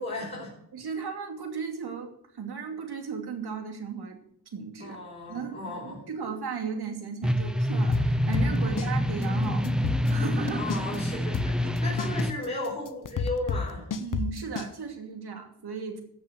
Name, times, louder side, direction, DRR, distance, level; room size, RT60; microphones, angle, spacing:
voice 1, 0.0-0.5 4.8-6.0 8.6-8.8 10.5-13.9, left 2 dB, 25° left, -6 dB, 4.8 m, -35 dB
voice 2, 0.7-4.2 4.5-5.0 5.3-10.7 11.6-11.7 14.0-16.0, right 5 dB, 80° right, 4 dB, 2.8 m, -36 dB
sound 1, 7.2-12.3, left 1 dB, ahead, 0.7 m, -27 dB
sound 2, 7.9-8.9 9.2-9.3 9.6-11.0 11.3-14.7, left 5 dB, 55° left, 1.0 m, -30 dB
14.5 x 6.6 x 7.6 m, 0.71 s
wide cardioid pair, 135°, 38 cm